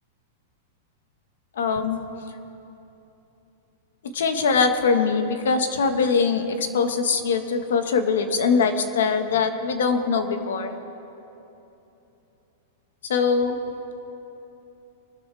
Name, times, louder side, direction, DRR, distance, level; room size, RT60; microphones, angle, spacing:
voice 1, 1.6-2.0 4.1-10.7 13.1-13.6, left 5 dB, 85° left, 6 dB, 1.5 m, -22 dB
23.5 x 13.0 x 3.5 m, 3.0 s
supercardioid pair, 175°, 0 cm